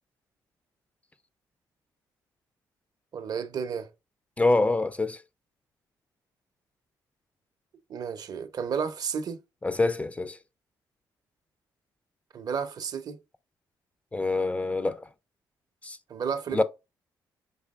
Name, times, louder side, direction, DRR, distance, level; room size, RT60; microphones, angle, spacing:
voice 1, 3.1-3.9 7.9-9.4 12.3-13.2 16.1-16.6, right 6 dB, 55° right, 0.6 m, -32 dB
voice 2, 4.4-5.2 9.6-10.4 14.1-15.1 15.8-16.0 16.5-16.6, left 2 dB, 15° left, 0.3 m, -25 dB
5.4 x 3.3 x 2.3 m
cardioid pair, 95°, 8 cm